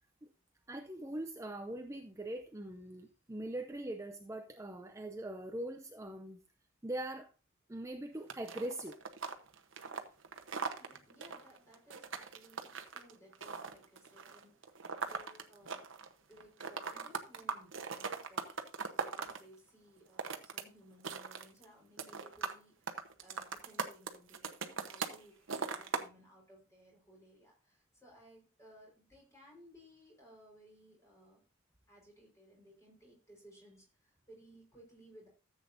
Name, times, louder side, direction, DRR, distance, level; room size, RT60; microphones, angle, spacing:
voice 1, 0.7-6.4 6.8-7.3 7.7-8.9, right 1 dB, 15° right, 6 dB, 0.5 m, -42 dB
sound 1, 8.3-16.1 16.4-19.4 20.0-20.6 20.9-21.6 22.0-22.6 22.9-25.2 25.5-26.1, right 5 dB, 60° right, 1.1 m, -40 dB
voice 2, 10.8-15.8 16.3-18.5 18.9-31.4 31.9-35.3, equal, 15° left, -2 dB, 4.6 m, -60 dB
14.0 x 8.0 x 2.7 m, 0.32 s
head